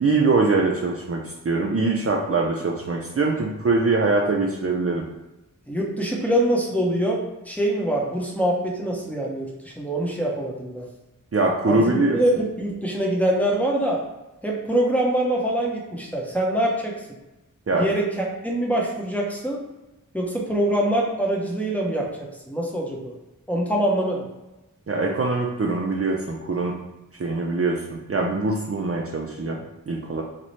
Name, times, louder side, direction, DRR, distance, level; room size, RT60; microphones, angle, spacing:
voice 1, 0.0-5.0 11.3-12.2 17.7-17.9 24.9-26.8 27.2-30.2, right 3 dB, 45° right, 0 dB, 0.4 m, -23 dB
voice 2, 5.7-10.8 11.7-14.0 14.4-16.9 17.7-19.6 20.1-22.1 22.5-23.1 23.5-24.3, right 1 dB, 5° left, -3 dB, 0.7 m, -24 dB
4.1 x 2.0 x 3.1 m, 1.0 s
wide cardioid pair, 50°, 33 cm